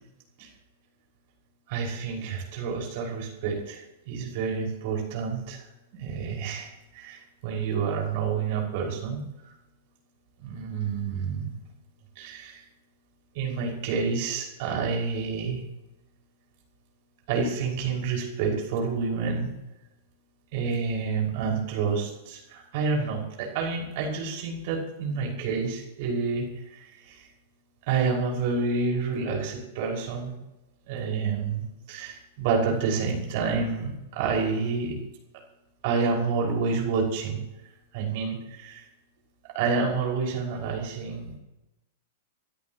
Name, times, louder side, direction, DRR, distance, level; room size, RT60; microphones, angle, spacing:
voice 1, 1.7-3.8 4.1-5.7 5.9-9.5 10.4-11.6 12.2-12.6 13.3-15.6 17.3-19.5 20.5-27.3 27.9-30.4 30.9-34.9 35.8-37.4 37.9-38.8 39.5-41.4, right 5 dB, 50° right, -1 dB, 5.7 m, -29 dB
26.5 x 13.0 x 3.1 m, 0.96 s
figure-of-eight pair, 100°, 0 cm